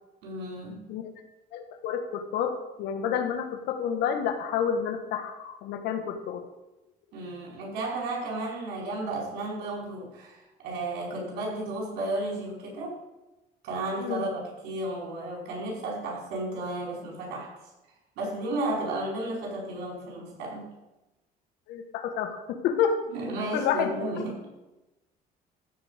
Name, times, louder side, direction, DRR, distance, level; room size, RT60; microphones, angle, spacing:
voice 1, 0.2-0.9 7.1-13.0 13.6-17.5 18.2-20.7 23.1-24.5, right 2 dB, 90° right, -1 dB, 5.1 m, -33 dB
voice 2, 1.5-6.4 14.0-14.3 21.7-23.0 23.5-23.9, left 7 dB, 90° left, 6 dB, 1.6 m, -29 dB
15.0 x 5.0 x 8.2 m, 1.0 s
cardioid pair, 110°, 17 cm